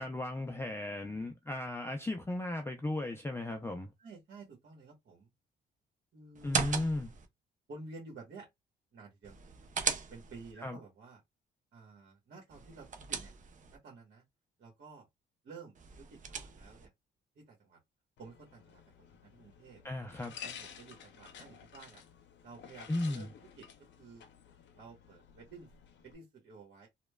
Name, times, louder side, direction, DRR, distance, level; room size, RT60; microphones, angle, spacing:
voice 1, 0.0-3.9 6.4-7.1 10.6-10.8 19.8-20.3 22.9-23.3, left 2 dB, 10° left, 0.4 m, -36 dB
voice 2, 4.0-5.3 6.1-6.6 7.7-8.5 8.9-9.4 10.1-11.2 11.7-13.3 13.7-14.2 14.6-15.1 15.4-16.9 17.3-17.8 18.2-19.8 20.4-22.0 22.4-24.2 24.7-25.7 26.0-26.9, right 4 dB, 60° right, 1.2 m, -52 dB
sound 1, 6.3-7.3 9.2-10.5 12.5-13.8 15.7-16.9, right 6 dB, 40° right, 0.6 m, -38 dB
sound 2, 18.2-26.1, left 8 dB, 65° left, 0.6 m, -52 dB
3.0 x 2.2 x 2.2 m
cardioid pair, 90°, 20 cm